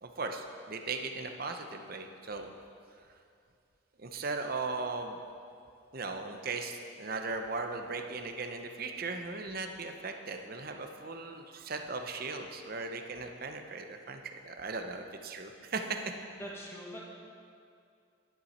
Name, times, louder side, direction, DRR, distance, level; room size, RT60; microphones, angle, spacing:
voice 1, 0.0-2.5 4.0-5.2 5.9-16.0, right 3 dB, 45° right, 5 dB, 0.7 m, -38 dB
voice 2, 16.4-17.0, equal, 15° left, -3 dB, 1.5 m, -43 dB
11.0 x 9.8 x 4.3 m, 2.4 s
head